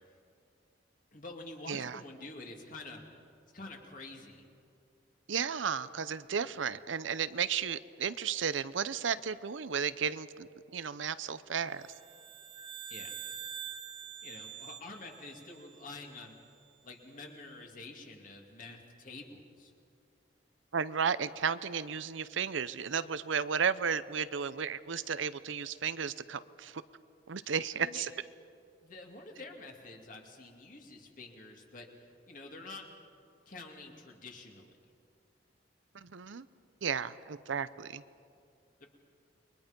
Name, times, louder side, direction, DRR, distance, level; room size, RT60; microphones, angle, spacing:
voice 1, 1.1-3.0 3.5-4.5 12.9-13.1 14.2-16.4 16.8-19.7 27.7-28.1 28.8-31.9 32.3-32.9 33.5-34.7 38.8-38.9, left 2 dB, 45° left, 2 dB, 2.7 m, -48 dB
voice 2, 1.7-2.0 5.3-11.8 20.7-26.8 27.3-28.1 35.9-36.5 36.8-38.0, right 6 dB, 85° right, 14 dB, 0.7 m, -34 dB
sound 1, 11.8-16.3, right 8 dB, 25° right, 0.8 m, -46 dB
29.5 x 22.5 x 5.3 m, 2.4 s
head